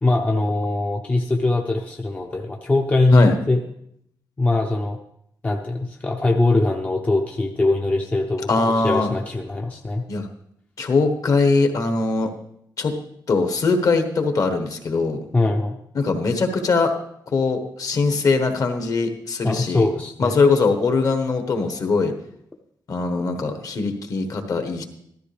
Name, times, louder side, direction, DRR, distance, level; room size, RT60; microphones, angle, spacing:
voice 1, 0.0-3.6 4.4-5.0 5.4-8.5 8.7-10.0 15.3-15.8 19.4-20.3, left 2 dB, 20° left, 1 dB, 0.6 m, -21 dB
voice 2, 8.5-9.1 10.1-10.3 10.8-12.3 12.8-12.9 13.3-15.2 15.9-16.9 17.3-19.9 20.2-22.1 22.9-24.8, left 4 dB, 50° left, 6 dB, 1.2 m, -21 dB
14.5 x 13.0 x 3.4 m, 0.74 s
wide cardioid pair, 170°, 8 cm